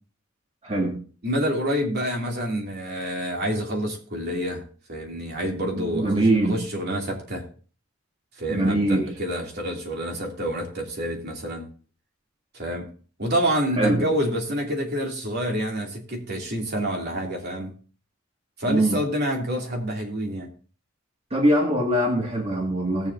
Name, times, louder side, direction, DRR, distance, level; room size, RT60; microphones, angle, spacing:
voice 1, 0.6-1.0 5.8-6.6 8.5-9.1 13.8-14.1 18.7-19.0 21.3-23.1, right 1 dB, 30° right, -1 dB, 2.1 m, -22 dB
voice 2, 1.2-4.6 4.9-7.4 8.4-11.6 12.5-12.8 13.2-17.7 18.6-20.5, equal, 55° right, 0 dB, 2.8 m, -27 dB
19.0 x 7.6 x 2.7 m, 0.40 s
head